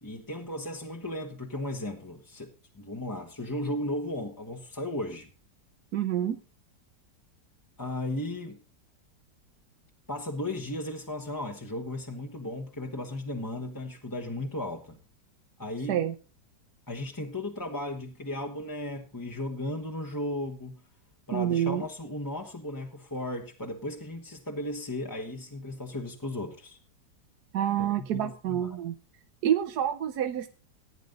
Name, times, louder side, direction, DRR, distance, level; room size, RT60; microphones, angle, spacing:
voice 1, 0.0-5.3 7.8-8.6 10.1-15.0 15.6-16.0 16.9-20.8 21.3-26.8 27.8-28.8, left 1 dB, 15° left, 0.9 m, -35 dB
voice 2, 5.9-6.4 15.9-16.1 21.3-21.8 27.5-28.9 29.4-30.5, right 10 dB, 70° right, 1.2 m, -27 dB
15.5 x 9.3 x 3.8 m
omnidirectional pair, 1.9 m